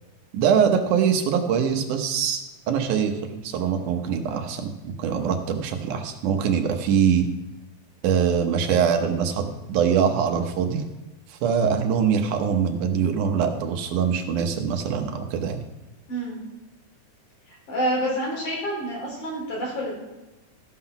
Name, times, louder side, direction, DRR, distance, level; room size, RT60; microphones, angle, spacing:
voice 1, 0.3-2.4 2.7-7.3 8.0-10.8 11.3-15.6, right 7 dB, 90° right, 5 dB, 2.5 m, -23 dB
voice 2, 16.1-16.4 17.5-19.9, equal, 75° left, -4 dB, 5.7 m, -28 dB
14.5 x 5.8 x 5.8 m, 1.1 s
omnidirectional pair, 3.5 m